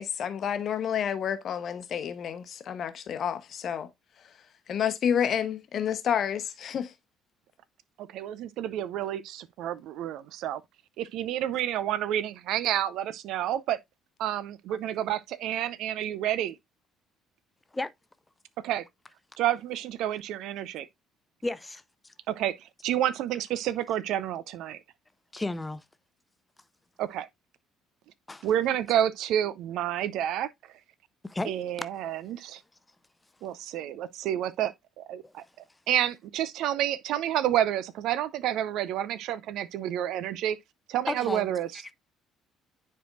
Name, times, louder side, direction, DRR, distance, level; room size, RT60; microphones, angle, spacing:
voice 1, 0.0-3.9 4.7-6.9, left 8 dB, 50° left, 1.0 m, -29 dB
voice 2, 8.0-10.6 11.0-13.8 14.2-16.6 18.6-18.8 19.4-20.9 22.3-24.8 27.0-27.3 28.4-30.5 31.5-32.6 33.4-35.4 35.9-40.6 40.9-41.8, right 11 dB, 60° right, 0.5 m, -29 dB
voice 3, 21.4-22.1 25.3-25.8 28.3-28.5 31.2-31.5 35.2-35.3 41.1-41.5, left 2 dB, 15° left, 0.7 m, -33 dB
9.9 x 4.7 x 2.4 m
figure-of-eight pair, 50°, 0 cm